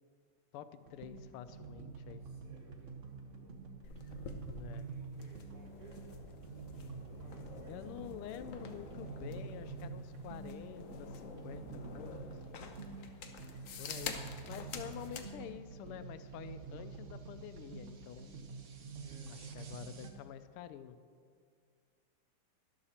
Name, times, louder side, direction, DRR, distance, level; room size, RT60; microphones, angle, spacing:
voice 1, 0.5-2.3 4.5-4.8 7.7-12.2 13.8-14.1 14.5-18.4 19.3-21.0, left 10 dB, 85° left, 12 dB, 1.5 m, -48 dB
sound 1, 0.8-20.1, right 5 dB, 50° right, 0.9 m, -48 dB
voice 2, 2.2-3.6 4.7-6.2 6.7-8.1 8.4-9.3 12.9-15.4 19.0-19.5, equal, 75° right, -5 dB, 3.9 m, -61 dB
sound 2, 3.8-15.3, left 5 dB, 60° left, 0.8 m, -48 dB
12.5 x 11.5 x 4.3 m, 2.1 s
omnidirectional pair, 2.4 m